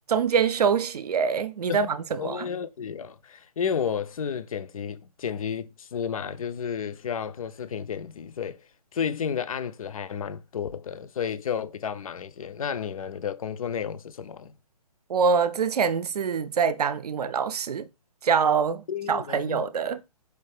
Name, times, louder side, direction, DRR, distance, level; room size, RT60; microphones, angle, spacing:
voice 1, 0.1-2.5 15.1-17.9 18.2-20.0, right 6 dB, 75° right, 0.5 m, -25 dB
voice 2, 2.2-8.6 8.9-14.5 18.9-19.6, left 7 dB, 60° left, 0.5 m, -32 dB
4.6 x 2.4 x 3.3 m
hypercardioid pair, 160°, 20 cm